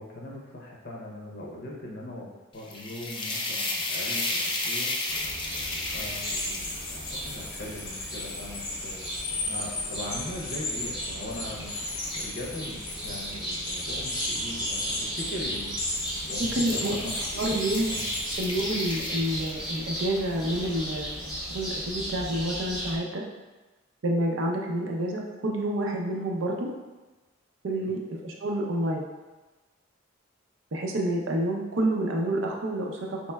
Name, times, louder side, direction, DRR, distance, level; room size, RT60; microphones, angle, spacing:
voice 1, 0.0-5.0 5.9-15.7 16.3-17.4 17.9-18.0 27.7-27.9, left 1 dB, 50° left, -2 dB, 0.7 m, -40 dB
sound 1, 2.5-9.8 10.3-14.3 15.2-15.4 15.8-20.0, left 2 dB, 25° left, 0.3 m, -35 dB
sound 2, 5.1-23.0, equal, 5° right, 0.8 m, -36 dB
sound 3, 6.0-18.4, left 2 dB, 85° left, 1.0 m, -36 dB
voice 2, 16.4-17.1 17.4-17.9 18.4-21.3 21.5-23.2 24.0-26.7 27.6-29.0 30.7-33.2, right 1 dB, 65° right, 0 dB, 0.5 m, -28 dB
4.3 x 3.1 x 2.2 m, 1.2 s
head